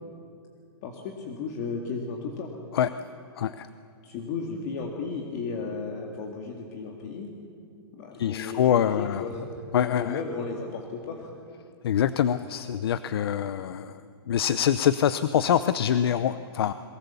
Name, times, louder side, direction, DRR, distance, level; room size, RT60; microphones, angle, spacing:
voice 1, 0.8-2.5 4.0-7.3 7.9-9.5 10.0-11.3, left 4 dB, 40° left, 1 dB, 2.2 m, -34 dB
voice 2, 3.4-3.7 8.1-9.2 9.7-10.2 11.8-14.0 14.3-16.7, left 9 dB, 65° left, 13 dB, 0.7 m, -25 dB
22.5 x 22.5 x 7.1 m, 2.4 s
hypercardioid pair, 160°, 14 cm